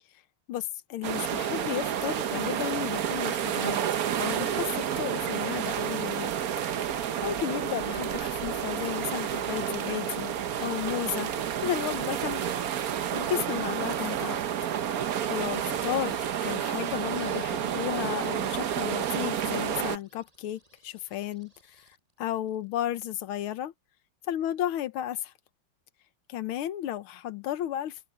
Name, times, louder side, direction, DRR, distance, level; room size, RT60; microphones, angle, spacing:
voice 1, 0.5-3.9 4.2-6.3 6.8-10.3 10.6-11.3 11.6-12.5 12.8-14.4 14.9-21.9 22.2-23.7 24.3-25.3 26.3-28.0, left 12 dB, 85° left, 1.7 m, -33 dB
sound 1, 1.0-20.0, right 9 dB, 55° right, 1.1 m, -30 dB
Ratchet pawl / Tools, 8.0-8.6 9.4-10.1 11.0-11.9 12.4-12.5, right 5 dB, 40° right, 0.8 m, -49 dB
sound 2, 19.7-22.7, right 1 dB, 15° right, 6.5 m, -57 dB
open air
omnidirectional pair, 2.3 m